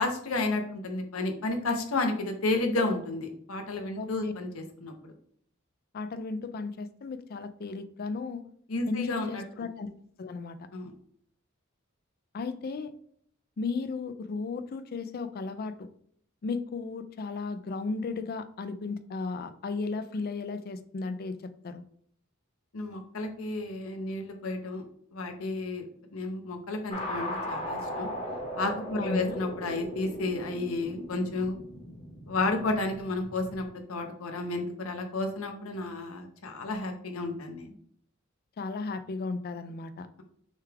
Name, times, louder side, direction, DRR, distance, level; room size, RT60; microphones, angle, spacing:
voice 1, 0.0-5.1 8.7-9.6 10.7-10.9 22.7-24.8 25.1-25.8 26.1-28.1 28.6-31.6 32.3-37.8, left 2 dB, 85° left, 5 dB, 0.8 m, -32 dB
voice 2, 4.0-4.3 5.9-8.4 8.9-9.9 10.2-10.6 12.3-12.9 13.6-15.9 16.4-21.8 29.0-29.4 38.6-40.1, left 4 dB, 45° left, 11 dB, 0.4 m, -35 dB
sound 1, 26.9-33.7, equal, 30° left, 1.0 m, -38 dB
6.4 x 2.4 x 3.3 m, 0.63 s
head